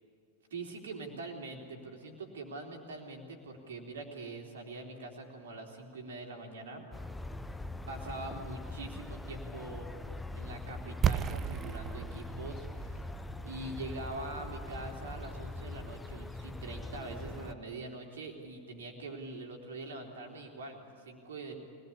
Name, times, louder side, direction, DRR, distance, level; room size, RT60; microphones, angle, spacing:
voice 1, 0.5-7.1 7.9-9.9 10.3-13.1 13.4-21.6, right 2 dB, 65° right, 2 dB, 3.6 m, -44 dB
sound 1, 6.9-17.5, left 2 dB, 5° left, 0.9 m, -42 dB
sound 2, 11.0-16.8, right 8 dB, 25° right, 0.6 m, -36 dB
24.0 x 19.0 x 8.7 m, 2.6 s
figure-of-eight pair, 90°, 0 cm